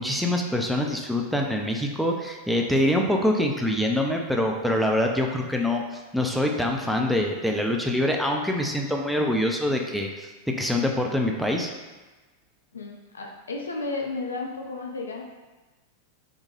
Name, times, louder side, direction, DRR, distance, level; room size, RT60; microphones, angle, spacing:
voice 1, 0.0-11.7, left 1 dB, ahead, 1 dB, 0.3 m, -25 dB
voice 2, 12.7-15.2, left 3 dB, 70° left, 1 dB, 0.4 m, -33 dB
2.9 x 2.1 x 2.9 m, 1.2 s
figure-of-eight pair, 90°, 0 cm